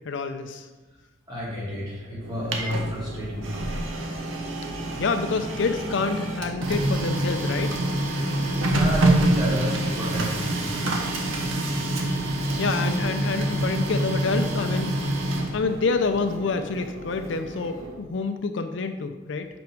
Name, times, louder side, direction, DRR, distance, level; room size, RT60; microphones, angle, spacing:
voice 1, 0.0-0.7 5.0-7.8 12.6-14.9 15.5-19.5, left 4 dB, 65° left, 8 dB, 0.5 m, -27 dB
voice 2, 1.3-4.0 8.7-10.6, equal, 20° right, -7 dB, 2.4 m, -30 dB
Printer, 2.2-18.0, right 1 dB, 90° right, 1.0 m, -27 dB
6.0 x 5.3 x 4.5 m, 1.2 s
head